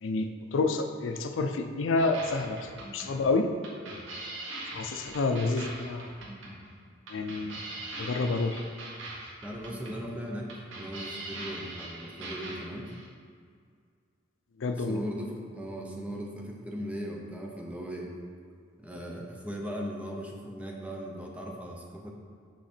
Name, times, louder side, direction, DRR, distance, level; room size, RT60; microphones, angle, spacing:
voice 1, 0.0-3.5 4.7-6.1 7.1-7.6 8.0-8.6 14.6-15.0, left 3 dB, 75° left, 7 dB, 0.4 m, -29 dB
sound 1, 2.0-13.1, right 2 dB, 70° right, 1.3 m, -42 dB
voice 2, 9.4-12.9 14.7-18.1 18.8-22.1, equal, 5° right, -1 dB, 0.7 m, -38 dB
6.2 x 4.8 x 4.3 m, 2.1 s
head